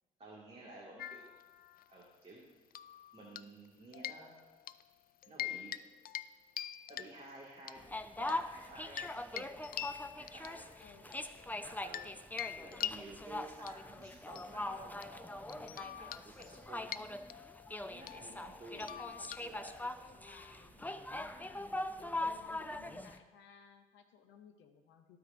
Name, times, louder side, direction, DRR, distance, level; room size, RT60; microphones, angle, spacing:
voice 1, 0.2-1.3 1.9-2.4 3.1-4.4 5.2-5.8 6.9-7.8 8.2-9.5 10.2-10.7 11.0-17.1 17.9-19.8, right 2 dB, 35° right, -4 dB, 2.0 m, -53 dB
sound 1, 1.0-2.0 2.7-3.7 3.9-4.8 5.2-5.8 6.1-6.3 6.6-7.8 8.3-12.1 12.4-20.0, left 11 dB, 50° left, 0.4 m, -45 dB
sound 2, 7.8-23.2, left 2 dB, 10° left, 0.6 m, -42 dB
voice 2, 10.8-11.1 18.7-25.2, left 7 dB, 70° left, 7 dB, 0.8 m, -60 dB
14.0 x 4.7 x 2.6 m, 1.4 s
hypercardioid pair, 50°, 20 cm